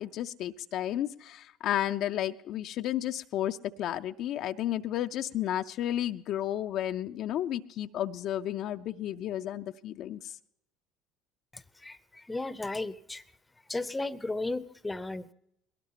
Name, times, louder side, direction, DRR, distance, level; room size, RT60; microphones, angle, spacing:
voice 1, 0.0-10.3, left 12 dB, 55° left, 8 dB, 0.4 m, -32 dB
voice 2, 11.5-13.2 13.7-15.3, left 2 dB, 15° left, 18 dB, 0.6 m, -35 dB
21.5 x 18.0 x 2.9 m, 0.77 s
hypercardioid pair, 65°, 0 cm